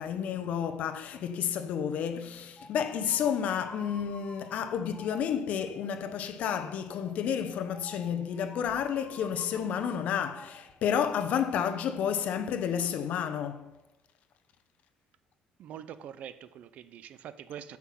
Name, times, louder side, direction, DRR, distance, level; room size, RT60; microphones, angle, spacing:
voice 1, 0.0-13.8, left 8 dB, 55° left, 0.9 m, -31 dB
sound 1, 2.6-11.4, left 1 dB, ahead, 1.6 m, -51 dB
voice 2, 15.6-17.8, right 9 dB, 55° right, 0.5 m, -44 dB
9.8 x 6.0 x 7.6 m
cardioid pair, 160°, 3 cm